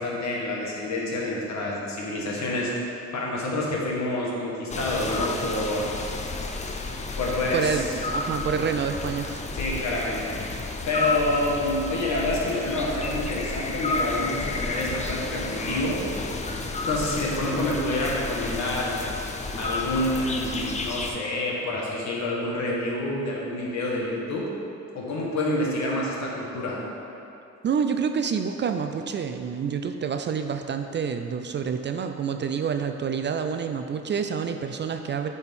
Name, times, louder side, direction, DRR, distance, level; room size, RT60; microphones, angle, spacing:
voice 1, 0.0-5.9 7.2-7.8 9.5-10.4 10.9-16.0 16.9-19.0 19.6-24.5 24.9-26.8, left 1 dB, 65° left, -3 dB, 1.6 m, -28 dB
sound 1, 4.7-21.1, left 3 dB, 25° left, 0.5 m, -31 dB
voice 2, 7.5-9.5 27.6-35.3, right 6 dB, 40° right, 7 dB, 0.4 m, -28 dB
8.8 x 4.3 x 3.6 m, 2.7 s
cardioid pair, 90°, 30 cm